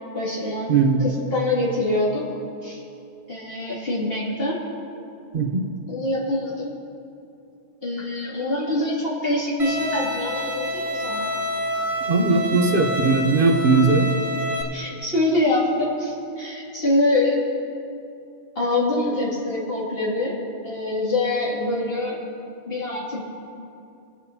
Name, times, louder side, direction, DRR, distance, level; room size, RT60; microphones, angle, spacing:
voice 1, 0.1-0.7 1.0-2.3 2.6-2.8 3.3-4.6 5.9-6.7 7.8-11.3 14.7-17.4 18.5-20.4 20.6-22.2 22.7-23.2, left 2 dB, 60° left, -7 dB, 2.9 m, -24 dB
voice 2, 0.7-1.0 5.3-5.7 12.1-14.1, right 4 dB, 55° right, 3 dB, 1.1 m, -19 dB
Bowed string instrument, 9.6-14.6, equal, 35° right, 1.2 m, -28 dB
25.0 x 8.8 x 2.9 m, 2.6 s
omnidirectional pair, 1.1 m